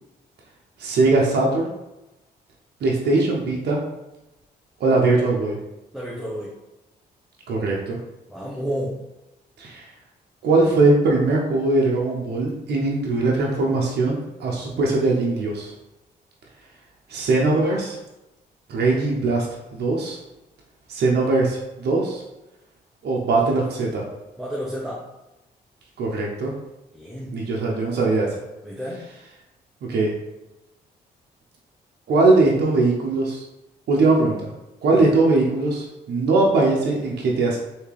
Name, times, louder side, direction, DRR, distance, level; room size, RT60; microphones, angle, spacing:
voice 1, 0.8-1.7 2.8-3.8 4.8-5.6 7.5-8.0 9.6-9.9 10.4-15.7 17.1-18.0 18.7-19.5 19.7-20.2 20.9-22.2 23.0-24.0 26.0-26.5 27.3-28.3 29.9-30.1 32.1-33.4 33.9-34.5 34.8-37.6, right 3 dB, 70° right, -2 dB, 0.7 m, -20 dB
voice 2, 5.9-6.5 8.3-9.0 24.4-25.0 26.9-27.4 28.6-29.0 34.9-35.1, equal, ahead, -5 dB, 0.8 m, -30 dB
3.4 x 2.8 x 3.3 m, 0.97 s
supercardioid pair, 60°, 18 cm